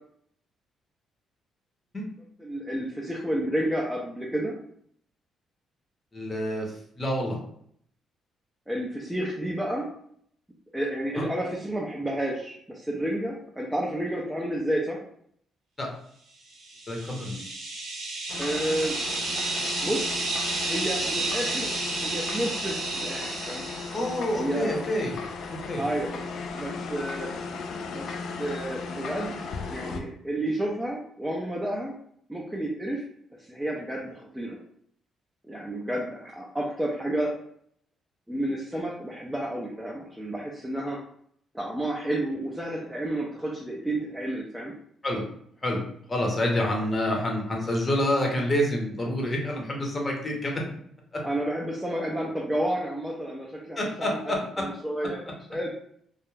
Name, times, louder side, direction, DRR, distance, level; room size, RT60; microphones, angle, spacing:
voice 1, 2.4-4.6 8.7-9.9 10.7-15.0 18.4-19.0 19.8-20.2 20.6-21.7 22.0-23.7 24.3-24.8 25.8-26.2 26.5-27.3 27.9-29.4 29.7-31.9 32.3-33.0 33.4-34.6 35.4-37.3 38.3-41.0 41.5-44.7 51.2-54.2 54.6-55.2 55.5-55.7, right 1 dB, 5° right, -3 dB, 0.5 m, -30 dB
voice 2, 6.1-7.4 11.2-11.3 15.8-15.9 16.9-17.4 23.9-25.1 25.5-25.8 45.0-45.3 45.6-45.8 46.1-50.6 51.1-51.2 53.8-54.7, left 1 dB, 30° left, 0 dB, 0.8 m, -28 dB
sound 1, 16.6-24.4, right 2 dB, 75° right, 0.8 m, -31 dB
sound 2, 18.3-30.0, left 4 dB, 70° left, 0.3 m, -36 dB
2.3 x 2.1 x 3.1 m, 0.67 s
cardioid pair, 90°, 0 cm